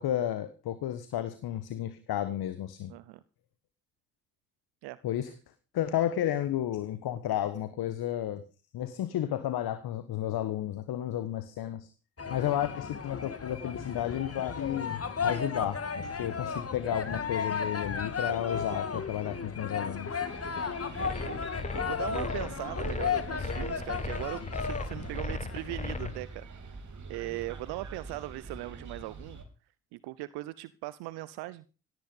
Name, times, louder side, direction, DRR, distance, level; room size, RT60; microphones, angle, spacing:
voice 1, 0.0-2.9 5.0-5.3 5.7-8.4 8.7-11.9 12.3-20.2, left 11 dB, 60° left, 12 dB, 1.4 m, -32 dB
voice 2, 2.9-3.2 4.8-5.0 16.3-16.6 21.0-26.8 27.1-29.4 29.9-31.6, right 19 dB, 70° right, 17 dB, 0.8 m, -40 dB
sound 1, 12.2-26.1, left 6 dB, 35° left, 2.5 m, -34 dB
sound 2, 20.3-29.4, right 4 dB, 45° right, 3.6 m, -45 dB
sound 3, 20.9-26.2, left 3 dB, 15° left, 1.5 m, -37 dB
17.0 x 10.0 x 5.4 m, 0.35 s
hypercardioid pair, 45°, 41 cm